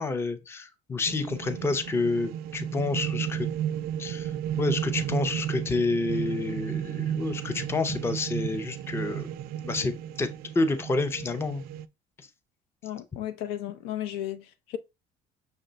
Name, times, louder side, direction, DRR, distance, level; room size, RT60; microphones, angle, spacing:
voice 1, 0.0-3.5 4.0-4.3 4.6-9.3 9.6-11.6, left 3 dB, 15° left, 0.5 m, -29 dB
sound 1, 1.1-11.9, right 10 dB, 60° right, 0.4 m, -33 dB
voice 2, 12.8-14.8, left 12 dB, 80° left, 0.6 m, -34 dB
5.9 x 2.2 x 3.8 m
cardioid pair, 135°, 18 cm